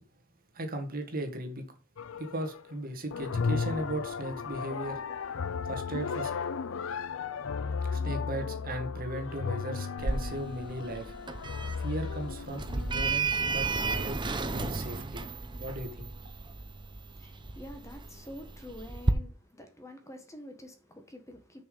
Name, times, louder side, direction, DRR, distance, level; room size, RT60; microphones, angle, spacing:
voice 1, 0.5-1.7 2.2-6.3 7.8-11.1 11.8-14.2 14.5-15.2 15.6-16.1, right 1 dB, 45° right, 1.7 m, -37 dB
sound 1, 2.0-2.7 3.1-13.2, left 5 dB, 65° left, 0.5 m, -35 dB
Sliding door, 10.0-19.1, right 3 dB, 20° right, 0.7 m, -33 dB
voice 2, 17.0-21.6, left 1 dB, 15° left, 1.4 m, -47 dB
6.8 x 6.0 x 5.3 m
head